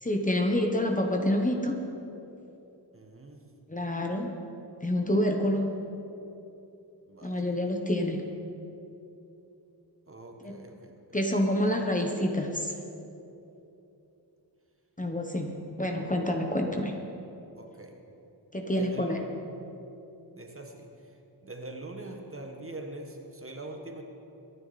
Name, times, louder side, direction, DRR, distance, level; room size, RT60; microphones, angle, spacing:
voice 1, 0.0-1.8 3.7-4.3 4.8-5.7 7.2-8.2 10.4-10.5 11.1-12.7 15.0-16.9 18.5-19.2, left 1 dB, 20° left, 2 dB, 1.3 m, -27 dB
voice 2, 2.9-3.5 7.1-7.4 10.1-11.0 17.6-18.0 18.7-19.2 20.4-20.9 21.4-24.0, right 2 dB, 30° right, 3 dB, 1.6 m, -43 dB
24.5 x 9.8 x 4.3 m, 2.9 s
wide cardioid pair, 95°, 42 cm